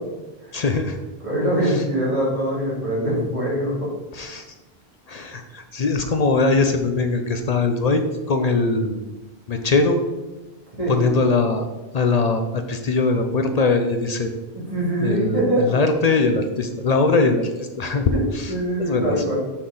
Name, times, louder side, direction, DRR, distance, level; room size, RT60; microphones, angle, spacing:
voice 1, 0.5-1.0 1.6-1.8 4.1-4.5 5.1-8.0 8.3-9.0 9.5-10.0 10.9-11.7 11.9-14.3 15.0-18.5 18.8-19.2, left 3 dB, 50° left, 6 dB, 0.5 m, -21 dB
voice 2, 1.2-3.9 10.8-11.1 14.7-15.6 18.5-19.4, right 1 dB, 30° right, -6 dB, 2.4 m, -23 dB
6.3 x 5.8 x 3.8 m, 1.1 s
omnidirectional pair, 1.1 m